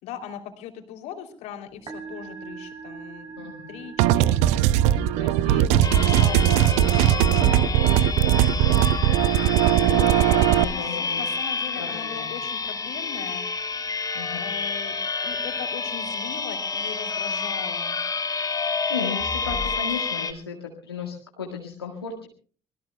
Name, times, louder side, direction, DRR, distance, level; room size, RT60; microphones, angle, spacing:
voice 1, 0.0-4.7 5.1-8.1 10.6-14.0 14.3-15.0 15.2-18.0 19.4-19.6, left 9 dB, 60° left, 6 dB, 3.1 m, -39 dB
Musical instrument, 1.7-16.4, right 5 dB, 40° right, 6.7 m, -47 dB
voice 2, 3.4-3.8 8.3-9.3 9.8-11.3 11.7-12.3 14.1-14.5 18.9-22.3, left 5 dB, 85° left, 0 dB, 1.8 m, -35 dB
sound 1, 4.0-10.6, right 12 dB, 60° right, 0.7 m, -19 dB
sound 2, 5.8-20.3, left 4 dB, 30° left, 4.1 m, -29 dB
26.0 x 21.0 x 2.3 m, 0.41 s
figure-of-eight pair, 45°, 12 cm